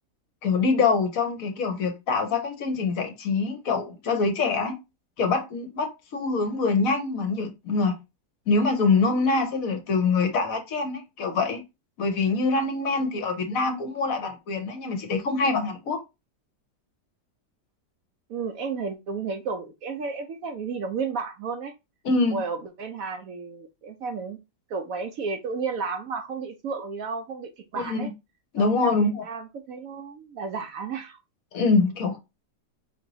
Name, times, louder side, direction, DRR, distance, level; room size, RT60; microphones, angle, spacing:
voice 1, 0.4-4.8 5.2-8.0 8.5-11.6 12.0-16.0 22.0-22.4 27.8-28.0 28.5-29.2 31.5-32.2, left 4 dB, 65° left, 1.0 m, -24 dB
voice 2, 18.3-21.7 22.3-24.4 24.7-28.1 28.6-31.2, right 5 dB, 70° right, 0.9 m, -32 dB
5.3 x 2.9 x 2.6 m
omnidirectional pair, 1.8 m